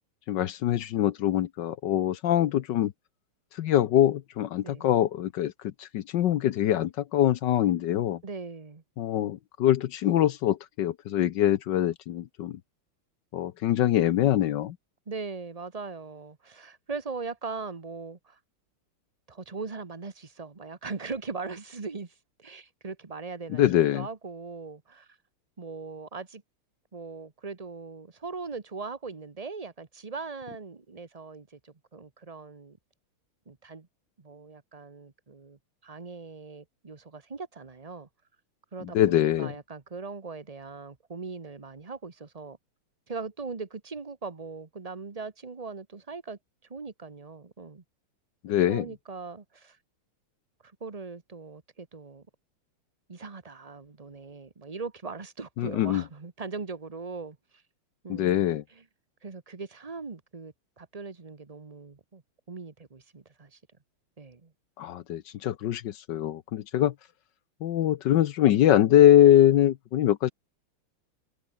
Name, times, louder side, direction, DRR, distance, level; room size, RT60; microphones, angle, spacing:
voice 1, 0.3-2.9 3.6-5.5 5.8-8.2 9.0-12.6 13.3-14.7 23.6-24.1 38.9-39.5 48.4-48.8 55.6-56.0 58.1-58.6 64.8-66.9 67.6-70.3, left 11 dB, 65° left, 1.3 m, -23 dB
voice 2, 8.2-8.8 15.1-18.4 19.3-23.6 23.9-25.2 25.6-26.4 26.9-32.8 33.5-33.9 34.2-38.1 38.7-42.6 43.1-46.4 46.7-47.8 48.6-49.8 50.8-52.3 53.1-57.4 58.0-58.9 59.2-62.2 62.5-63.6 64.2-64.5, right 4 dB, 25° right, 1.0 m, -40 dB
omnidirectional pair, 2.3 m